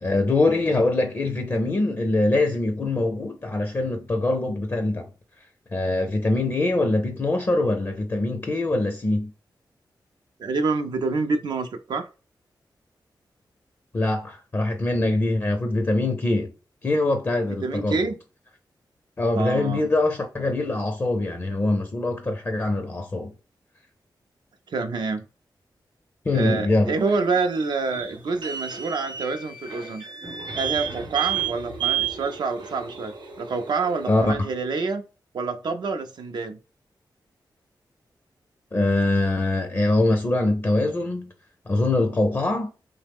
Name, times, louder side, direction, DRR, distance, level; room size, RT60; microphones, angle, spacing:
voice 1, 0.0-5.1 5.7-9.3 13.9-16.5 16.8-18.1 19.2-23.3 26.3-26.9 34.1-34.3 38.7-41.3 41.7-42.7, left 2 dB, 30° left, 0.5 m, -23 dB
voice 2, 10.4-12.1 17.6-18.2 19.4-19.9 24.7-25.2 26.3-30.0 30.5-35.0 35.3-36.6, right 4 dB, 65° right, 0.4 m, -27 dB
sound 1, 27.0-34.2, right 9 dB, 90° right, 0.8 m, -32 dB
3.0 x 2.0 x 3.4 m
wide cardioid pair, 130°, 8 cm